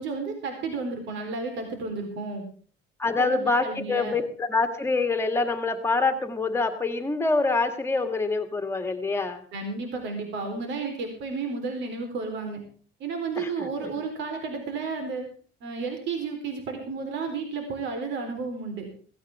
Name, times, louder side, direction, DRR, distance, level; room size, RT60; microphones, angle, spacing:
voice 1, 0.0-2.4 3.2-4.2 9.5-12.6 13.0-15.3 15.6-18.9, right 4 dB, 65° right, 4 dB, 4.1 m, -32 dB
voice 2, 3.0-9.4 13.4-13.9, left 3 dB, 10° left, 7 dB, 1.9 m, -26 dB
16.5 x 16.5 x 3.6 m, 0.42 s
cardioid pair, 165°, 20 cm